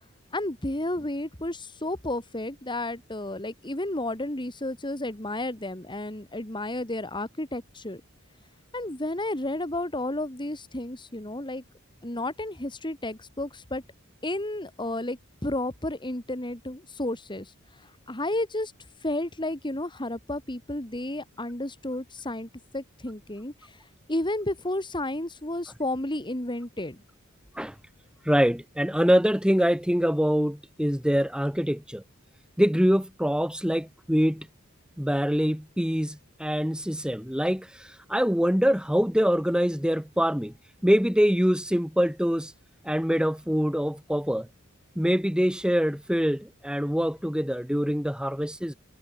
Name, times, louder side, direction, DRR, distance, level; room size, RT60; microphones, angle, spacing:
voice 1, 0.3-8.0 8.7-11.6 12.0-13.8 14.2-17.5 17.8-18.7 19.0-23.8 24.1-27.0, left 1 dB, 20° left, 2.7 m, -32 dB
voice 2, 28.2-32.0 32.6-34.5 35.0-40.5 40.8-42.5 42.8-44.5 45.0-48.7, equal, 5° right, 2.9 m, -24 dB
head